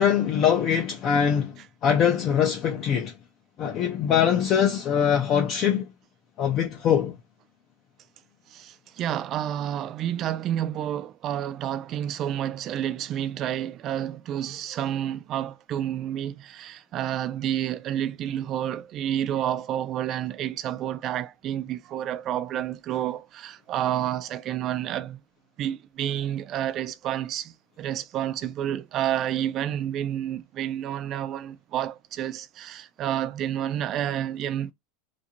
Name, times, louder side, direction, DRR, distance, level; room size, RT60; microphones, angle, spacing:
voice 1, 0.0-3.1 3.6-5.9 6.4-7.2, left 8 dB, 30° left, 0.4 m, -23 dB
voice 2, 8.5-25.2 25.6-34.7, right 11 dB, 30° right, 0.3 m, -30 dB
2.6 x 2.5 x 2.8 m
supercardioid pair, 160°, 0 cm